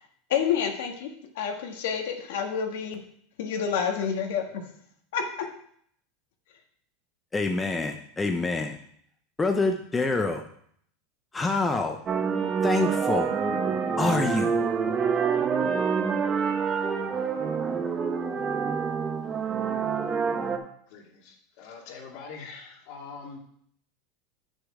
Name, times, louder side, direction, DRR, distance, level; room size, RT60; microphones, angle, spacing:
voice 1, 0.3-3.0 3.4-4.6 5.1-5.5, left 7 dB, 75° left, 3 dB, 1.5 m, -28 dB
voice 2, 7.3-8.8 9.4-10.4 11.3-12.0 12.6-13.3 14.0-14.6, left 3 dB, 10° left, 4 dB, 0.5 m, -26 dB
sound 1, 12.1-20.6, right 6 dB, 20° right, 0.7 m, -27 dB
voice 3, 20.9-23.4, left 5 dB, 55° left, 0 dB, 2.2 m, -43 dB
8.3 x 6.3 x 4.8 m, 0.64 s
supercardioid pair, 165°, 0 cm